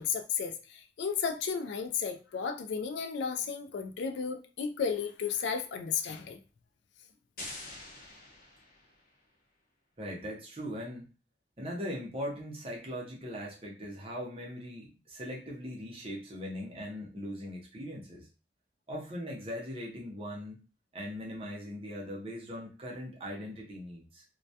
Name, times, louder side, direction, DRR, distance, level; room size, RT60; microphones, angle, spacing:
voice 1, 0.0-6.4, left 6 dB, 70° left, 6 dB, 0.3 m, -33 dB
sound 1, 7.4-9.2, left 2 dB, 50° left, 0.7 m, -46 dB
voice 2, 10.0-11.0 11.6-18.3 18.9-20.6 20.9-24.2, equal, 30° right, -2 dB, 0.6 m, -40 dB
2.2 x 2.1 x 2.7 m, 0.34 s
head